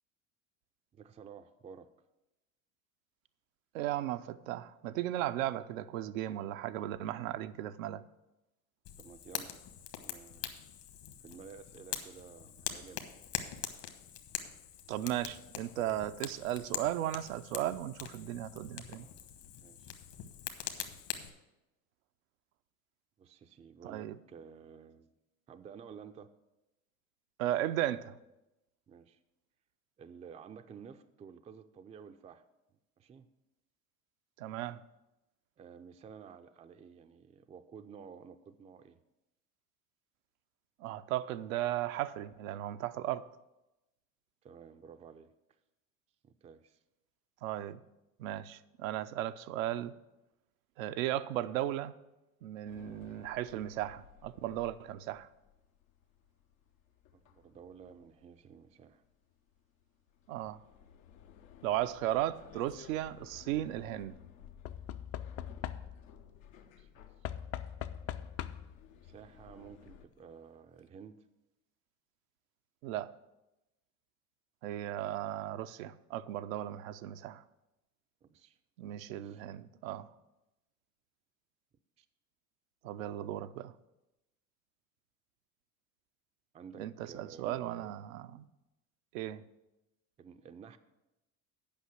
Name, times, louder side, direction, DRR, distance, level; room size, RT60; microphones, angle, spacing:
voice 1, 0.9-1.9 9.0-9.6 10.0-10.7 11.2-13.1 19.6-19.9 23.2-25.1 25.5-26.3 28.9-29.2 30.0-32.4 33.0-33.3 35.6-39.0 44.4-45.3 46.2-46.8 57.1-59.0 66.8-66.9 67.2-67.6 68.9-71.2 78.2-78.6 79.2-79.5 82.0-82.1 86.5-88.0 90.2-90.8, right 6 dB, 15° right, 0.4 m, -52 dB
voice 2, 3.7-8.0 14.9-19.1 23.8-24.2 27.4-28.1 34.4-34.8 40.8-43.3 47.4-47.8 48.2-49.9 50.8-51.9 52.4-55.3 60.3-60.6 61.6-64.2 72.8-73.1 74.6-77.4 78.8-80.1 82.8-83.7 86.8-88.5 89.1-89.4, right 13 dB, 75° right, 0.6 m, -36 dB
Fire, 8.8-21.3, left 10 dB, 55° left, 1.3 m, -43 dB
sound 1, 52.7-70.0, left 9 dB, 80° left, 0.9 m, -58 dB
Knock / Wood, 62.4-62.9 64.6-66.2 67.2-68.8 69.9-70.0 70.2-70.3, left 10 dB, 35° left, 0.5 m, -41 dB
8.7 x 5.6 x 7.5 m
hypercardioid pair, 85°, 41 cm